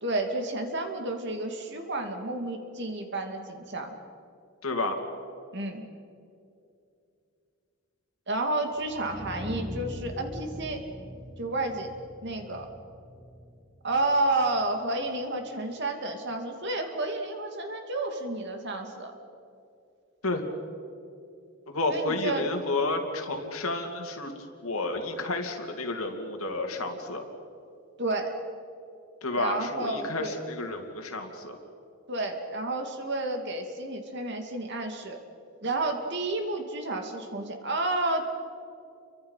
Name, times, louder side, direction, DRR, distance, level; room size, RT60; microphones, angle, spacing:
voice 1, 0.0-3.9 5.5-5.8 8.3-10.8 11.4-11.9 12.2-12.7 13.8-19.1 21.9-22.4 28.0-28.3 29.3-30.4 32.1-35.2 35.6-38.2, right 2 dB, 50° right, 4 dB, 2.5 m, -30 dB
voice 2, 4.6-5.0 20.2-20.4 21.7-24.3 24.6-27.2 29.2-31.6, left 2 dB, 75° left, 4 dB, 2.7 m, -31 dB
sound 1, 8.7-14.8, equal, ahead, 1.8 m, -42 dB
30.0 x 24.0 x 5.7 m, 2.6 s
head